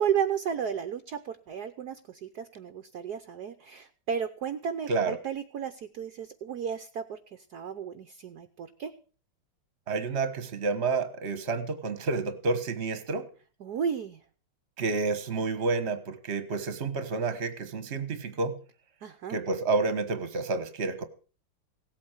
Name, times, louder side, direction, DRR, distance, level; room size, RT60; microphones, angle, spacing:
voice 1, 0.0-8.9 13.6-14.2 19.0-19.4, right 8 dB, 55° right, 9 dB, 1.2 m, -33 dB
voice 2, 9.9-13.3 14.8-18.6 19.3-21.0, right 3 dB, 35° right, 11 dB, 1.4 m, -29 dB
17.0 x 8.6 x 6.6 m, 0.38 s
omnidirectional pair, 2.4 m